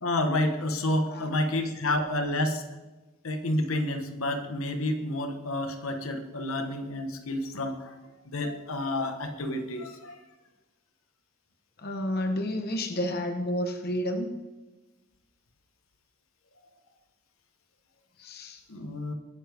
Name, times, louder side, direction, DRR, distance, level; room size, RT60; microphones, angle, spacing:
voice 1, 0.0-2.6 3.2-8.0 8.2-10.2 18.7-19.1, left 1 dB, 75° left, 6 dB, 1.4 m, -29 dB
voice 2, 11.8-14.3 18.2-18.6, left 1 dB, 45° left, 5 dB, 1.2 m, -30 dB
21.0 x 10.0 x 3.6 m, 1.1 s
head